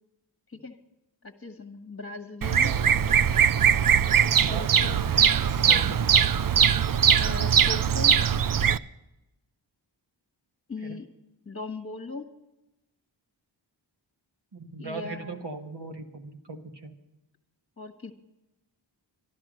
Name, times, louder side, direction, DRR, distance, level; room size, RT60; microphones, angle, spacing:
voice 1, 1.2-2.7 3.9-4.0 4.5-5.0 5.6-6.2 7.2-8.4 10.7-11.1 11.4-12.3 14.8-15.4 17.8-18.1, left 3 dB, 30° left, 5 dB, 1.3 m, -39 dB
Bird vocalization bird call bird song, 2.4-8.8, right 8 dB, 50° right, 0.5 m, -21 dB
voice 2, 2.6-3.2 4.4-5.2 5.6-6.4 10.8-11.0 14.5-16.9, right 3 dB, 65° right, 5 dB, 1.5 m, -40 dB
12.5 x 12.5 x 6.2 m, 0.94 s
wide cardioid pair, 50°, 46 cm